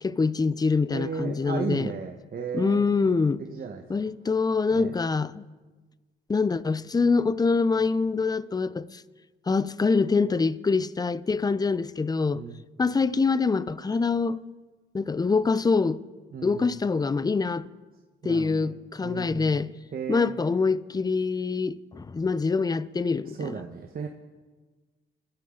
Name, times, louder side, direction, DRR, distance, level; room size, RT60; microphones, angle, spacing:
voice 1, 0.0-1.9 2.5-3.4 3.9-5.4 6.3-9.0 9.5-12.4 12.8-14.4 14.9-16.0 16.4-17.7 18.2-19.7 20.1-23.5, left 4 dB, 20° left, 0.6 m, -25 dB
voice 2, 0.9-2.9 3.4-3.8 4.7-5.0 12.3-12.6 16.3-16.7 18.2-18.7 19.0-19.6 19.9-20.3 23.2-24.1, right 6 dB, 50° right, 1.2 m, -35 dB
27.0 x 13.5 x 3.9 m
cardioid pair, 90°, 20 cm